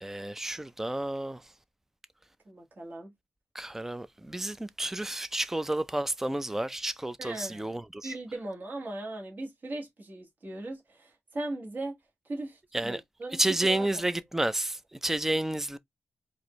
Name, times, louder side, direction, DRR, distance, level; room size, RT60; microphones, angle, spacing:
voice 1, 0.0-1.4 3.5-8.2 12.7-13.0 13.4-15.8, right 1 dB, 10° right, 0.4 m, -31 dB
voice 2, 2.4-3.1 7.2-7.7 8.0-12.0 12.2-13.9, right 2 dB, 40° right, 1.7 m, -38 dB
4.6 x 2.6 x 3.0 m
wide cardioid pair, 110°, 5 cm